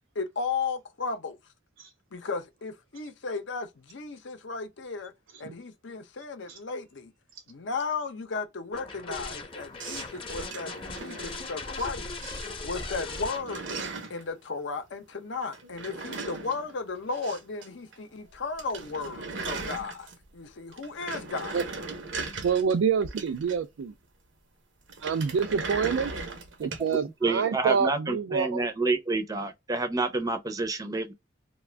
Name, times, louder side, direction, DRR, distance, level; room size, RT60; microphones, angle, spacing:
voice 1, 0.1-1.4 2.1-5.1 5.4-7.1 7.5-13.6 14.1-21.6, left 4 dB, 65° left, 0.7 m, -35 dB
sound 1, 8.7-13.7, left 3 dB, 30° left, 0.8 m, -38 dB
sound 2, 9.8-11.9 12.2-12.8 13.0-14.2 15.5-17.7 17.9-18.0 18.3-18.4 18.6-20.3 20.7-23.8 24.9-26.9, right 3 dB, 70° right, 0.8 m, -38 dB
voice 2, 22.4-23.9 25.0-26.1 26.6-28.6, right 6 dB, 85° right, 0.4 m, -27 dB
voice 3, 27.2-31.1, right 3 dB, 20° right, 0.6 m, -28 dB
2.4 x 2.2 x 3.2 m
head